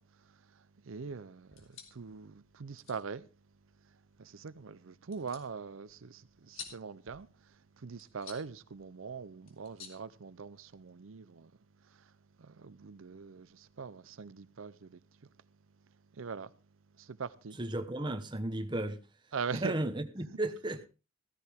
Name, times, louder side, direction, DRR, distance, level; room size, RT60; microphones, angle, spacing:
voice 1, 0.0-3.3 3.8-11.5 11.8-12.1 12.4-15.3 16.1-16.5 17.0-17.6 19.3-19.7, right 5 dB, 75° right, 0.6 m, -43 dB
sound 1, 1.4-10.9, left 6 dB, 75° left, 3.3 m, -54 dB
voice 2, 17.6-19.0 19.5-20.9, right 1 dB, 20° right, 1.1 m, -34 dB
15.0 x 15.0 x 3.6 m
head